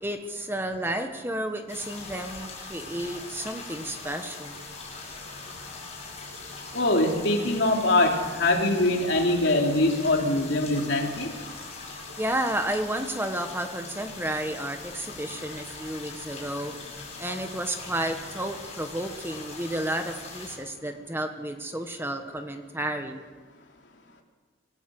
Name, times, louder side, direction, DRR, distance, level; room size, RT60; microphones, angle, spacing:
voice 1, 0.0-4.5 12.2-16.7 17.2-23.2, right 1 dB, 10° right, 5 dB, 1.4 m, -32 dB
sound 1, 1.7-20.6, left 3 dB, 35° left, 7.8 m, -41 dB
voice 2, 6.7-11.3, left 2 dB, 65° left, 1 dB, 3.3 m, -23 dB
25.0 x 14.5 x 7.9 m, 1.3 s
head